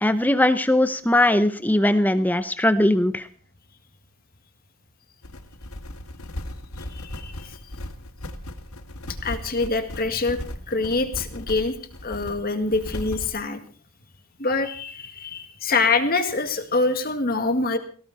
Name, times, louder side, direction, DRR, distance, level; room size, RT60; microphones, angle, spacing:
voice 1, 0.0-3.3, left 1 dB, 10° left, 11 dB, 0.7 m, -20 dB
sound 1, 5.2-13.3, left 1 dB, 85° left, 2.0 m, -36 dB
voice 2, 6.9-7.5 9.2-10.4 10.7-11.8 12.0-13.6 14.4-17.8, left 3 dB, 45° left, 7 dB, 1.9 m, -25 dB
19.0 x 17.0 x 4.1 m, 0.42 s
head